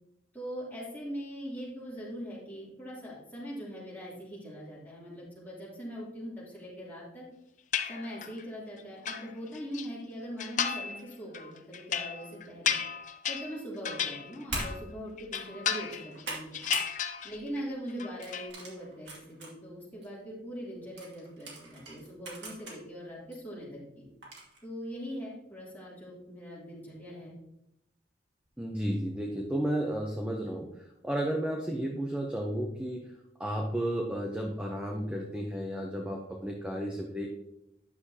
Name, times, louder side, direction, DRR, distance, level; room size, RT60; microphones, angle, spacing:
voice 1, 0.3-7.2 7.9-12.8 13.3-16.6 17.2-24.0 24.6-27.3, equal, 10° left, -8 dB, 3.1 m, -41 dB
sound 1, 7.7-8.4 8.8-9.9 10.4-11.0 11.3-14.9 15.2-16.2 16.5-17.6 17.9-18.5, left 8 dB, 45° left, 0.5 m, -34 dB
sound 2, 14.5-14.7 15.2-15.4 15.8-16.9 17.3-17.6 18.2-19.5 20.0-20.1 21.0-22.8 23.3-23.4 24.2-24.6, right 2 dB, 75° right, 2.4 m, -40 dB
voice 2, 28.6-30.7 31.0-33.1 33.4-37.3, right 1 dB, 5° right, 0 dB, 0.7 m, -32 dB
10.0 x 6.4 x 2.8 m, 0.84 s
head